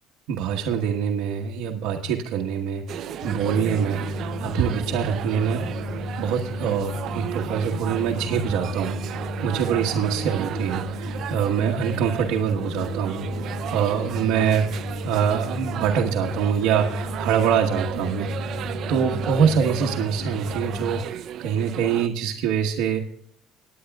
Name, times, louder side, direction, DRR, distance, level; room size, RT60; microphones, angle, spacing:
voice 1, 0.3-5.7 6.2-14.7 15.0-18.3 18.9-23.1, right 8 dB, 65° right, 0 dB, 1.2 m, -25 dB
sound 1, 2.9-22.1, right 10 dB, 45° right, 0.5 m, -34 dB
sound 2, 3.2-21.0, left 1 dB, 50° left, 3.9 m, -33 dB
26.0 x 9.6 x 2.4 m, 0.70 s
cardioid pair, 155°, 0 cm